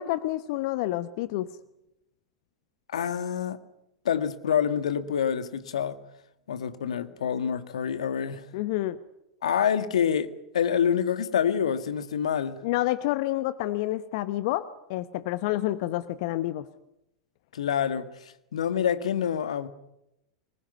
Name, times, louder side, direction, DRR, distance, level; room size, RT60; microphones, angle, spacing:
voice 1, 0.0-1.5 8.5-9.0 12.6-16.7, left 15 dB, 50° left, 1.0 m, -28 dB
voice 2, 2.9-3.6 4.1-6.0 6.5-8.5 9.4-12.6 17.5-19.7, left 8 dB, 70° left, 1.8 m, -27 dB
25.5 x 20.5 x 9.5 m
figure-of-eight pair, 90°, 4 cm